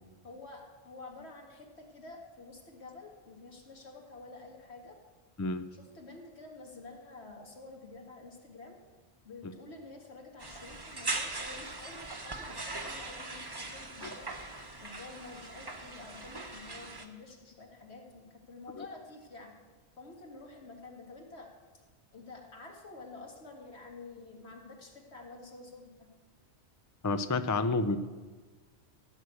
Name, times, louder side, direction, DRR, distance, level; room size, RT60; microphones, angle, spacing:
voice 1, 0.2-5.0 5.7-8.8 9.2-14.3 14.8-19.5 20.0-21.5 22.1-26.1, left 3 dB, 70° left, 1 dB, 2.1 m, -49 dB
sound 1, 10.4-17.1, right 2 dB, 20° right, 1.0 m, -40 dB
voice 2, 27.0-28.0, left 3 dB, 30° left, 11 dB, 0.3 m, -29 dB
15.0 x 6.4 x 8.2 m, 1.3 s
omnidirectional pair, 1.2 m